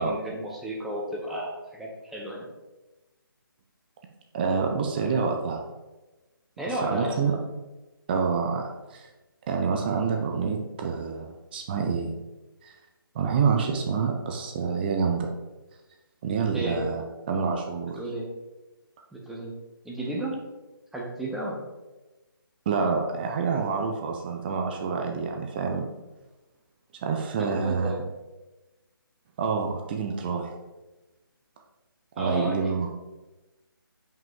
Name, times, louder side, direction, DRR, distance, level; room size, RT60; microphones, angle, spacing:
voice 1, 0.0-2.5 6.6-7.4 16.5-16.8 17.8-18.3 19.1-19.5 19.8-20.3 20.9-21.6 27.4-28.0 32.2-32.9, right 1 dB, ahead, -3 dB, 1.0 m, -33 dB
voice 2, 4.3-5.6 6.8-7.3 8.1-9.1 9.5-12.2 12.6-12.7 13.1-15.3 16.2-18.0 22.7-25.8 27.0-27.9 29.4-30.5 32.2-32.9, right 5 dB, 25° right, 3 dB, 0.7 m, -27 dB
9.1 x 5.4 x 3.7 m, 1.1 s
figure-of-eight pair, 145°, 12 cm